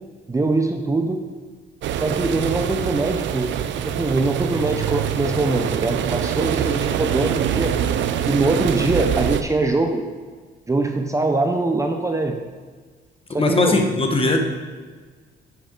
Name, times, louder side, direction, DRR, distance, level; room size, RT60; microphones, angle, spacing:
voice 1, 0.3-1.2 2.0-3.5 3.9-7.7 8.3-10.0 10.7-12.4 13.3-13.8, right 2 dB, 15° right, 4 dB, 0.6 m, -22 dB
sound 1, 1.8-9.4, right 9 dB, 70° right, 0.5 m, -24 dB
voice 2, 13.3-14.5, left 2 dB, 30° left, 3 dB, 1.0 m, -19 dB
7.9 x 6.0 x 3.7 m, 1.5 s
cardioid pair, 90°, 20 cm